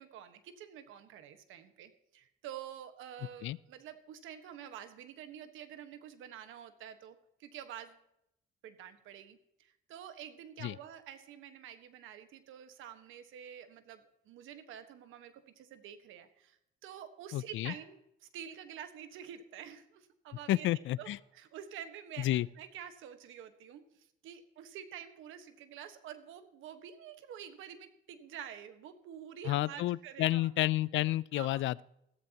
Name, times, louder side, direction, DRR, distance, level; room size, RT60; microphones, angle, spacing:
voice 1, 0.0-8.0 8.6-30.5 31.3-31.6, right 9 dB, 90° right, 9 dB, 1.4 m, -48 dB
voice 2, 17.3-17.7 20.5-21.2 22.2-22.5 29.4-31.8, left 15 dB, 75° left, 22 dB, 0.4 m, -30 dB
15.5 x 14.0 x 2.9 m, 0.78 s
cardioid pair, 90°, 20 cm